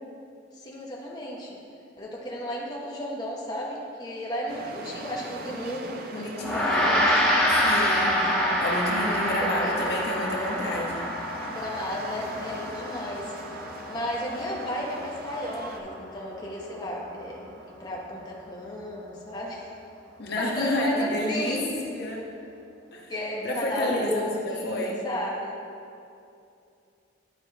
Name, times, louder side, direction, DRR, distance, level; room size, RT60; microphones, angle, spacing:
voice 1, 0.6-1.6 2.0-7.5 9.0-10.0 11.5-13.3 13.9-19.7 20.4-21.8 23.1-25.6, left 1 dB, 20° left, -4 dB, 0.9 m, -34 dB
sound 1, 4.5-15.8, right 2 dB, 50° right, 0.5 m, -43 dB
voice 2, 6.1-6.9 7.6-8.3 8.6-11.1 20.2-21.6 21.9-22.3 22.9-23.1 23.4-25.0, left 1 dB, 55° left, -1 dB, 1.0 m, -30 dB
Gong, 6.4-15.9, equal, ahead, 1.6 m, -27 dB
11.0 x 5.1 x 3.3 m, 2.6 s
head